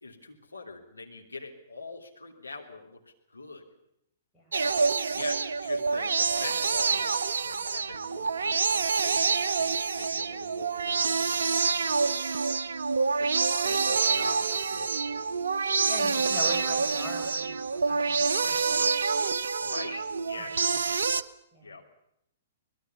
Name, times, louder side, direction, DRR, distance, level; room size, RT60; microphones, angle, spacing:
voice 1, 0.0-3.0 3.3-3.6 4.5-12.6 13.2-15.4 19.6-20.9 21.6-21.8, left 3 dB, 80° left, 2 dB, 3.3 m, -44 dB
sound 1, 4.5-21.2, right 4 dB, 65° right, 0.8 m, -27 dB
voice 2, 15.8-17.6 17.9-18.9 20.4-20.8 21.5-21.8, left 2 dB, 15° left, -1 dB, 7.8 m, -41 dB
25.0 x 20.5 x 7.0 m, 0.76 s
figure-of-eight pair, 115°, 0 cm